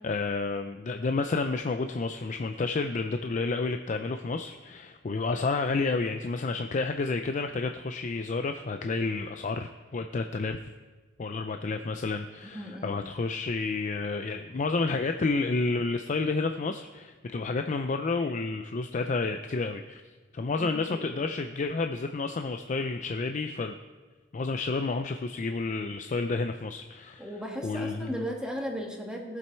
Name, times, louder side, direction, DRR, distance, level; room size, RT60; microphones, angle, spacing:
voice 1, 0.0-10.6 11.2-20.0 20.3-23.7 24.3-27.3 27.6-28.2, left 3 dB, 40° left, 7 dB, 0.4 m, -30 dB
voice 2, 12.4-13.0 20.6-21.1 27.2-29.4, equal, 5° right, 0 dB, 1.4 m, -36 dB
18.0 x 7.6 x 4.4 m, 1.3 s
head